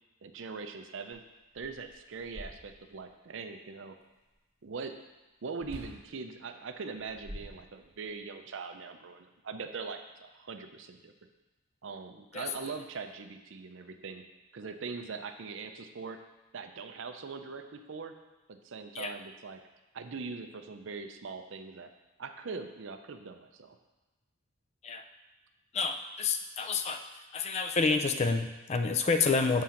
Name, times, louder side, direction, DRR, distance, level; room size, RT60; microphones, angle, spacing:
voice 1, 0.2-1.2 1.5-4.0 4.6-5.0 5.4-11.1 11.8-14.2 14.5-16.2 16.5-18.1 18.5-19.6 19.9-21.9 22.2-23.8, right 4 dB, 60° right, 7 dB, 0.5 m, -41 dB
sound 1, 1.5-3.1 5.6-6.1 6.9-8.1, equal, 30° right, 1.3 m, -46 dB
voice 2, 25.7-27.0 27.3-29.6, left 4 dB, 30° left, 8 dB, 0.3 m, -28 dB
7.5 x 3.7 x 5.7 m, 1.1 s
head